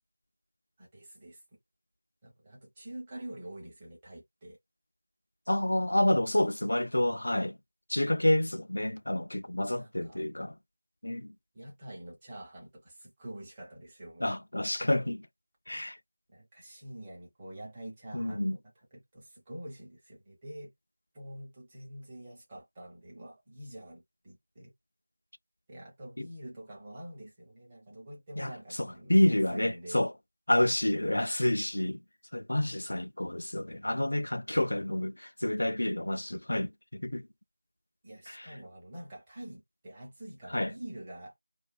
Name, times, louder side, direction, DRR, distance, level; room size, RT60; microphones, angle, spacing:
voice 1, 0.8-1.4 2.2-4.6 9.7-10.2 11.5-14.3 16.3-18.5 18.9-20.7 21.1-24.7 25.7-30.0 34.5-34.6 38.0-41.3, right 1 dB, 15° right, 0.7 m, -46 dB
voice 2, 5.5-7.6 7.9-10.5 11.0-11.3 14.2-15.3 15.7-16.0 18.1-18.6 26.2-26.3 28.4-30.1 30.5-32.0 32.3-37.3 38.3-38.5 40.5-40.7, left 1 dB, 70° left, 0.3 m, -29 dB
2.3 x 2.2 x 2.4 m
figure-of-eight pair, 175°, 0 cm